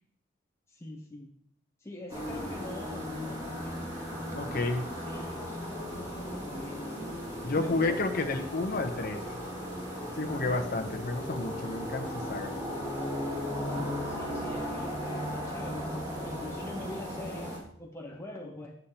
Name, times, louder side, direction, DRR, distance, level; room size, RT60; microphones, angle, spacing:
voice 1, 0.7-1.3 1.8-3.8 4.8-7.2 7.5-8.6 10.3-11.0 13.6-18.8, left 1 dB, 15° left, -2 dB, 0.6 m, -44 dB
sound 1, 2.1-17.6, equal, 20° right, 2.2 m, -36 dB
voice 2, 4.3-4.9 7.4-9.2 10.2-12.5, left 2 dB, 50° left, 5 dB, 0.8 m, -31 dB
8.3 x 8.1 x 2.9 m, 0.67 s
head